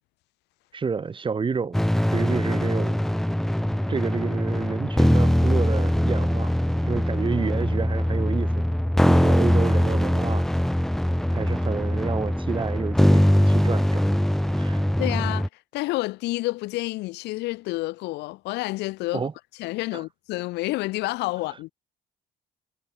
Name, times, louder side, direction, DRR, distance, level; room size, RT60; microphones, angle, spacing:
voice 1, 0.7-1.8 2.1-3.0 3.9-6.5 6.8-8.6 9.1-10.5 11.3-14.0 14.5-14.8 19.1-19.3 19.9-20.0, right 5 dB, 30° right, 7.0 m, -29 dB
sound 1, 1.7-15.5, equal, ahead, 1.0 m, -22 dB
voice 2, 15.0-19.3 19.6-21.7, left 20 dB, 90° left, 6.0 m, -29 dB
cardioid pair, 110°, 17 cm